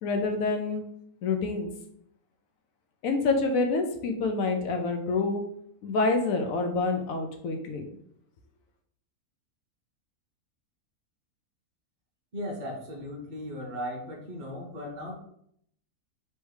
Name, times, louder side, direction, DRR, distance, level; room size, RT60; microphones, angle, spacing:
voice 1, 0.0-0.8 1.2-1.7 3.0-5.4 5.8-7.8, left 3 dB, 70° left, 4 dB, 1.0 m, -27 dB
voice 2, 12.3-15.1, equal, 35° right, -2 dB, 0.8 m, -37 dB
3.4 x 3.1 x 4.7 m, 0.70 s
omnidirectional pair, 1.6 m